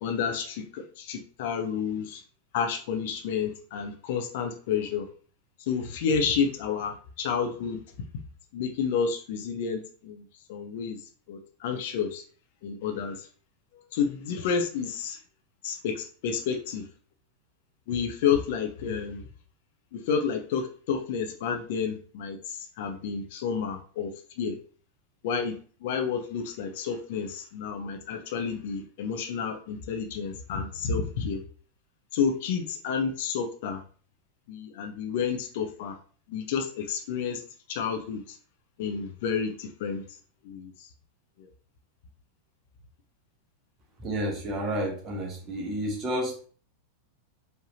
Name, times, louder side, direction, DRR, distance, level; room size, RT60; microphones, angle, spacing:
voice 1, 0.0-2.2 2.5-5.1 5.7-7.8 8.5-10.2 10.5-11.0 11.3-12.2 12.6-13.3 13.9-15.2 15.6-16.8 17.9-19.2 19.9-24.6 25.2-31.4 32.1-33.8 34.5-36.0 36.3-37.4 37.7-38.4 38.8-40.0 40.4-40.7 41.4-41.5, left 6 dB, 50° left, 6 dB, 0.6 m, -30 dB
voice 2, 44.0-46.5, right 1 dB, 30° right, 0 dB, 1.4 m, -31 dB
4.6 x 3.3 x 2.8 m, 0.41 s
figure-of-eight pair, 90°, 0 cm